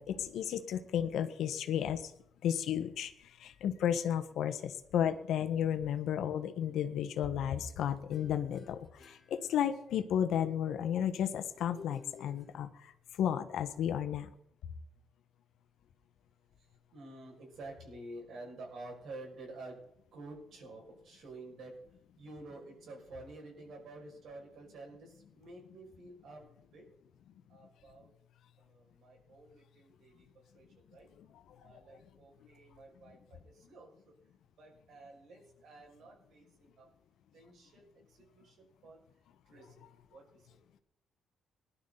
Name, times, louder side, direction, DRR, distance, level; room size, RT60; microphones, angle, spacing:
voice 1, 0.0-2.1 2.4-12.9 13.2-14.3 31.2-31.3 31.6-31.8, left 9 dB, 75° left, 9 dB, 1.3 m, -33 dB
sound 1, 8.1-10.0 11.5-13.1, left 3 dB, 45° left, 3.6 m, -55 dB
voice 2, 16.6-19.8 20.1-21.8 22.2-26.9 27.5-28.1 28.6-31.1 31.6-34.1 34.6-36.9 37.3-39.0 39.4-40.6, right 2 dB, 70° right, 0 dB, 5.9 m, -51 dB
20.0 x 11.5 x 4.0 m, 0.71 s
cardioid pair, 90°, 0 cm